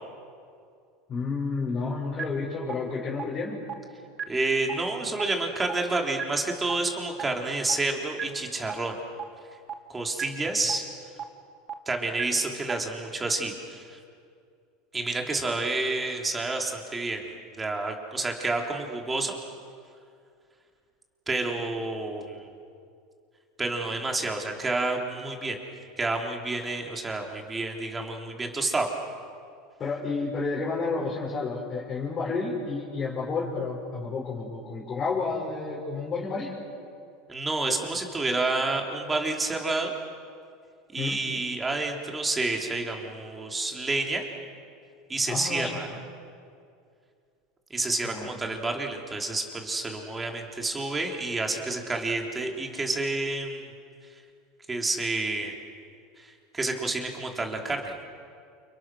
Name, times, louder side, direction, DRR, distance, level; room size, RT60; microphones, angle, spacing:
voice 1, 1.1-3.6 29.8-36.5 41.0-41.2 45.3-46.0 48.1-48.3, left 4 dB, 25° left, -5 dB, 5.9 m, -31 dB
sound 1, 2.2-2.3 2.7-2.8 3.2-3.3 3.7-3.8 4.2-4.3 4.7-4.8 5.2-5.3 5.7-5.8 6.2-6.3 6.7-6.8 7.2-7.3 7.7-7.8 8.2-8.3 8.7-8.8 9.2-9.3 9.7-9.8 10.2-10.3 10.7-10.8 11.2-11.3 11.7-11.8 12.2-12.3 12.7-12.8, right 8 dB, 30° right, 2.3 m, -32 dB
voice 2, 4.3-9.0 9.9-10.8 11.9-14.0 14.9-19.4 21.3-22.5 23.6-25.6 26.0-28.9 37.3-39.9 40.9-44.3 45.1-45.9 47.7-53.7 54.7-55.6 56.2-57.9, right 2 dB, 15° right, 2 dB, 3.7 m, -29 dB
30.0 x 29.5 x 6.4 m, 2.3 s
supercardioid pair, 140°, 0 cm